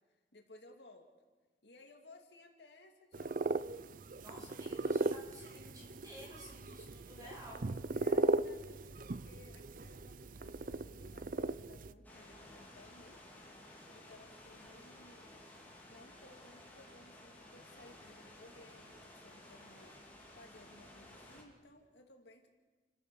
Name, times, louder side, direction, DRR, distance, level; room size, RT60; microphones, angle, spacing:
voice 1, 0.1-1.1 1.6-3.7 7.2-7.4 7.9-13.2 13.9-15.4 15.9-19.9 20.3-22.5, left 2 dB, 70° left, 3 dB, 2.4 m, -59 dB
sound 1, 3.1-11.9, right 3 dB, 50° right, 0.6 m, -37 dB
voice 2, 4.2-7.7, equal, 20° right, -2 dB, 6.9 m, -53 dB
sound 2, 12.0-21.4, left 1 dB, 10° left, 4.0 m, -55 dB
29.5 x 13.0 x 7.0 m, 1.3 s
head